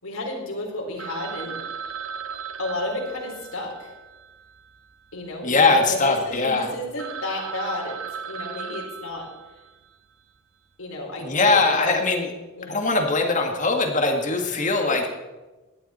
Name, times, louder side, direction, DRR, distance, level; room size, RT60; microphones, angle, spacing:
voice 1, 0.0-1.6 2.6-3.9 5.1-5.8 6.3-8.0 8.3-9.3 10.8-11.9 12.6-12.9, left 1 dB, 85° left, -1 dB, 4.2 m, -31 dB
Telephone, 1.0-5.3 5.6-5.7 6.2-6.3 6.7-6.8 7.0-9.9, right 7 dB, 85° right, 0.7 m, -37 dB
voice 2, 5.4-6.7 11.2-12.3 12.7-15.1, left 3 dB, 35° left, 3 dB, 1.9 m, -21 dB
17.5 x 12.0 x 4.3 m, 1.2 s
head